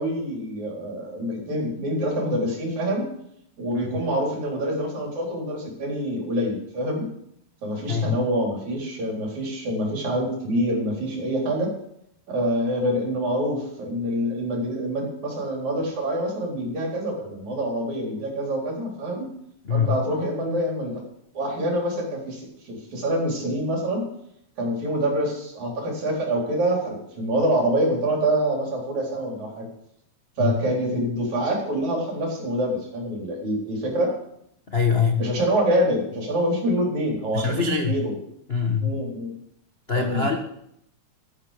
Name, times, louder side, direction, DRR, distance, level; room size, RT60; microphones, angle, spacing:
voice 1, 0.0-3.1 3.6-7.1 7.6-11.7 12.3-19.3 19.7-21.0 21.3-24.0 24.6-29.7 30.4-34.1 35.2-38.1 38.8-39.3 40.0-40.4, right 1 dB, 65° right, -1 dB, 5.4 m, -26 dB
voice 2, 19.6-20.0 30.4-30.5 34.7-35.2 37.3-38.0 38.5-38.9 39.9-40.4, left 6 dB, 70° left, 3 dB, 0.5 m, -23 dB
13.0 x 13.0 x 5.1 m, 0.73 s
omnidirectional pair, 3.5 m